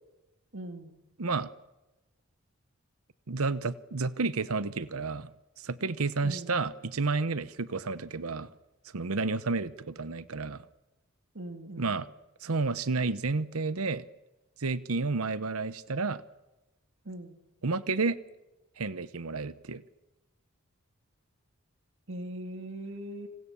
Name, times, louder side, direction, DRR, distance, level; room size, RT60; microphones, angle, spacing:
voice 1, 0.5-1.0 6.2-6.6 11.3-12.0 17.0-17.4 22.1-23.3, right 1 dB, 60° right, 7 dB, 2.3 m, -40 dB
voice 2, 1.2-1.5 3.3-5.3 5.6-8.5 8.9-10.6 11.8-12.1 12.4-14.1 14.6-16.2 17.6-18.2 18.8-19.8, right 3 dB, 85° right, 15 dB, 1.0 m, -31 dB
28.5 x 27.0 x 7.1 m, 1.0 s
head